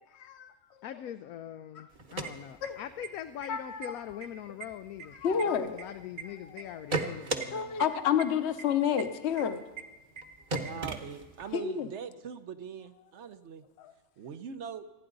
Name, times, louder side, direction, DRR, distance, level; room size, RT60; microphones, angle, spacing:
voice 1, 0.2-0.5 2.6-2.8 3.5-3.9 5.2-5.8 7.5-9.6 11.5-11.9 13.8-13.9, left 8 dB, 50° left, 9 dB, 1.1 m, -29 dB
voice 2, 0.8-5.2 5.4-7.8, left 10 dB, 80° left, 8 dB, 1.1 m, -42 dB
sound 1, 1.9-3.1 3.4-3.5 3.8-4.3 4.6-6.2 6.6-7.5 7.8-7.9 8.2-8.3 8.6-8.7 9.0-9.1 9.4-9.5 9.8-9.9 10.2-10.3 10.5-11.5, right 3 dB, 35° right, 1.2 m, -35 dB
voice 3, 10.6-13.6 14.2-14.9, right 7 dB, 60° right, 11 dB, 1.0 m, -42 dB
27.5 x 10.0 x 3.9 m, 1.2 s
omnidirectional pair, 1.5 m